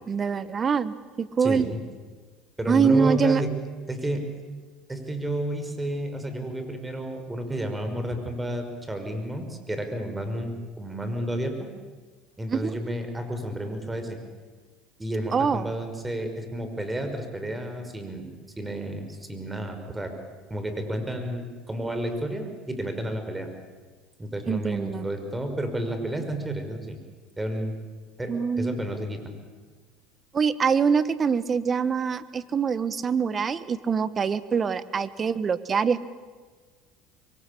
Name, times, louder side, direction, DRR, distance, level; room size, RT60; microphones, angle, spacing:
voice 1, 0.1-1.7 2.7-3.4 12.5-12.7 15.3-15.7 24.5-25.1 28.3-28.8 30.3-36.0, right 6 dB, 35° right, 15 dB, 1.4 m, -24 dB
voice 2, 1.4-1.8 2.6-3.5 3.9-4.3 4.9-11.7 12.4-14.2 15.0-18.3 18.6-20.1 20.5-23.5 24.2-27.0 27.4-27.7 28.2-29.3, right 1 dB, 15° right, 7 dB, 5.4 m, -31 dB
26.5 x 23.5 x 8.7 m, 1.4 s
hypercardioid pair, 80°, 0 cm